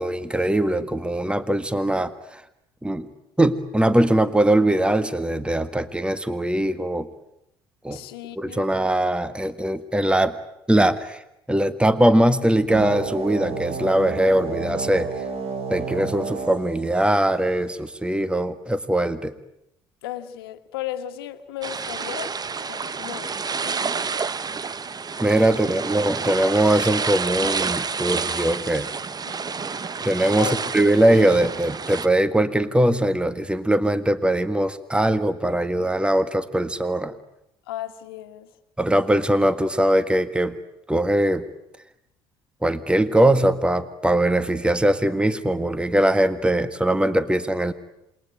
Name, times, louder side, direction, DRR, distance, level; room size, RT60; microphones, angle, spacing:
voice 1, 0.0-2.4 2.8-3.1 3.4-7.1 7.8-8.0 8.4-10.3 10.7-11.2 11.5-15.1 15.7-19.3 25.2-28.9 30.0-37.1 38.8-40.6 40.9-41.5 42.6-47.7, right 1 dB, 10° right, 13 dB, 1.7 m, -21 dB
voice 2, 7.9-8.7 20.0-22.3 22.7-23.3 23.6-23.9 25.5-25.7 29.3-29.4 30.4-30.5 37.7-38.5, left 13 dB, 85° left, 9 dB, 1.5 m, -35 dB
sound 1, 12.7-17.7, right 4 dB, 55° right, 4.7 m, -31 dB
sound 2, 21.6-32.1, right 5 dB, 35° right, 1.2 m, -29 dB
28.0 x 22.5 x 9.3 m, 0.83 s
hypercardioid pair, 60°, 12 cm